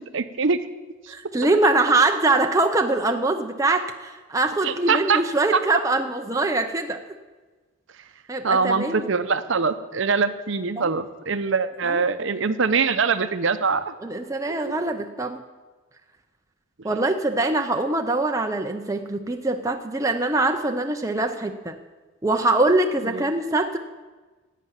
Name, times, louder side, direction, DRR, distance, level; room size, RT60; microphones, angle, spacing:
voice 1, 0.1-0.7 4.6-5.2 5.5-5.6 8.4-13.9 23.0-23.3, right 5 dB, 60° right, 11 dB, 0.7 m, -23 dB
voice 2, 1.1-7.0 8.3-9.1 10.8-10.9 11.8-12.0 14.0-15.4 16.8-21.8 22.2-23.8, right 2 dB, 15° right, 4 dB, 0.6 m, -23 dB
11.5 x 8.4 x 9.3 m, 1.3 s
head